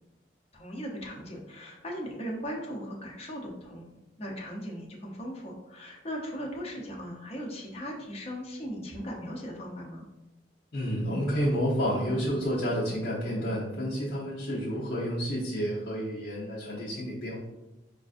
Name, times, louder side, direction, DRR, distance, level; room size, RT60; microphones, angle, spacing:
voice 1, 0.5-10.0, equal, 35° left, -1 dB, 0.7 m, -38 dB
voice 2, 10.7-17.4, equal, 90° left, -9 dB, 0.9 m, -30 dB
5.2 x 2.5 x 2.4 m, 0.97 s
head